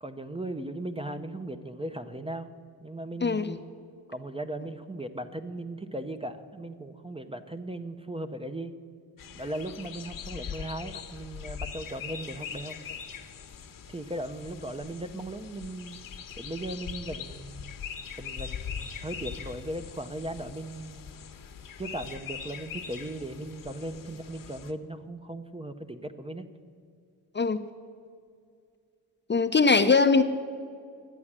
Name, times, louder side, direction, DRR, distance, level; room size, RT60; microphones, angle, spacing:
voice 1, 0.0-2.5 2.8-3.6 4.1-8.8 9.4-12.8 13.9-16.0 16.4-17.7 18.2-21.2 21.8-26.5, right 1 dB, 15° right, 9 dB, 0.6 m, -37 dB
voice 2, 3.2-3.6 27.3-27.6 29.3-30.2, left 4 dB, 25° left, 9 dB, 0.6 m, -21 dB
sound 1, 9.2-24.7, left 7 dB, 50° left, 1.0 m, -41 dB
11.0 x 8.7 x 7.4 m, 2.2 s
supercardioid pair, 55°, 42 cm